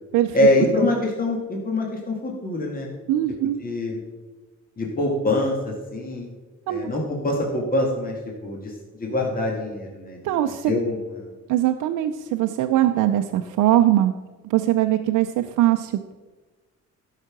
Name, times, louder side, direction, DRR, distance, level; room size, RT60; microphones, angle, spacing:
voice 1, 0.3-2.9 3.6-4.0 4.8-6.3 6.7-8.1 8.4-8.7 9.0-10.4 10.7-11.0, left 1 dB, 30° left, -1 dB, 2.0 m, -24 dB
voice 2, 3.1-3.6 6.7-6.9 10.2-10.8 11.5-14.1 14.4-15.9, right 13 dB, 90° right, 6 dB, 0.6 m, -21 dB
12.5 x 5.8 x 5.9 m, 1.3 s
cardioid pair, 90°, 30 cm